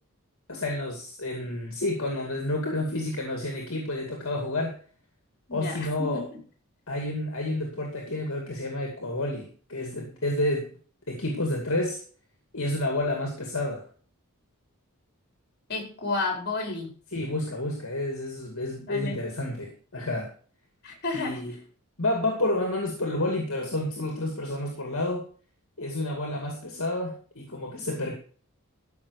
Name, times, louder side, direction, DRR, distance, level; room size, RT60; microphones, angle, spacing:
voice 1, 0.5-4.8 5.5-6.2 6.9-10.7 11.1-12.0 12.5-13.8 17.1-20.3 21.1-21.6 22.0-25.2 25.8-28.1, left 1 dB, 65° left, 1 dB, 2.4 m, -30 dB
voice 2, 5.5-6.3 15.7-16.9 18.8-19.2 20.8-21.4, left 3 dB, 45° left, 2 dB, 4.6 m, -31 dB
13.5 x 6.0 x 6.5 m, 0.42 s
head